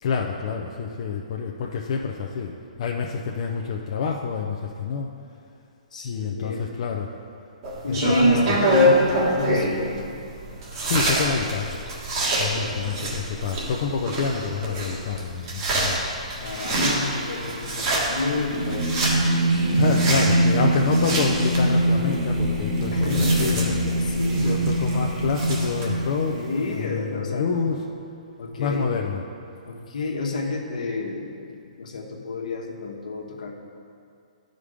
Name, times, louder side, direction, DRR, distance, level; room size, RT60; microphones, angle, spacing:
voice 1, 0.0-2.5 2.8-5.1 6.0-7.1 7.9-8.5 10.8-11.8 12.4-16.0 16.9-17.0 19.8-23.0 23.4-23.7 24.4-26.4 26.7-27.8 28.6-29.2, left 5 dB, 45° left, 0 dB, 0.5 m, -27 dB
voice 2, 5.9-6.6 7.8-10.1 12.5-13.1 16.4-18.9 19.5-19.8 22.9-24.6 26.3-27.6 28.4-28.9 29.6-33.5, left 3 dB, 75° left, 0 dB, 1.3 m, -30 dB
sound 1, 7.6-25.8, right 1 dB, 35° right, 1.6 m, -26 dB
Singing, 16.3-26.8, right 1 dB, 55° right, 1.9 m, -24 dB
9.7 x 5.2 x 5.0 m, 2.4 s
hypercardioid pair, 160°, 4 cm